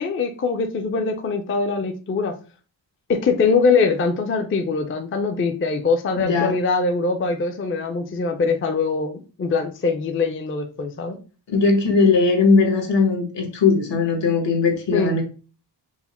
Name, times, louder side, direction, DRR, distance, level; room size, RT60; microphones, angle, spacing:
voice 1, 0.0-2.3 3.1-11.2 14.9-15.1, left 4 dB, 30° left, 5 dB, 0.4 m, -22 dB
voice 2, 6.1-6.5 11.5-15.2, left 4 dB, 75° left, 5 dB, 1.2 m, -19 dB
4.6 x 2.1 x 4.1 m, 0.36 s
wide cardioid pair, 160°, 44 cm